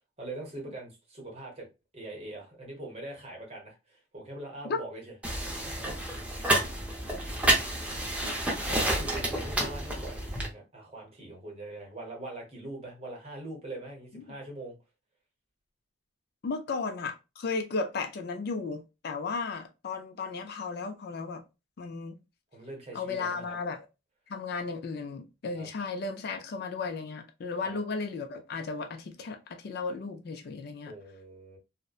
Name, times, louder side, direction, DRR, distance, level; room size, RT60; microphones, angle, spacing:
voice 1, 0.2-1.7 1.9-5.0 5.4-5.9 8.7-14.8 22.5-23.6 25.5-25.7 27.6-27.8 30.8-31.6, right 2 dB, 30° right, 0.8 m, -42 dB
sound 1, 5.2-10.5, right 1 dB, 5° right, 0.5 m, -29 dB
voice 2, 16.4-21.4 21.8-22.2 22.9-23.9 24.3-30.9, left 4 dB, 50° left, 0.3 m, -35 dB
2.6 x 2.0 x 2.3 m
head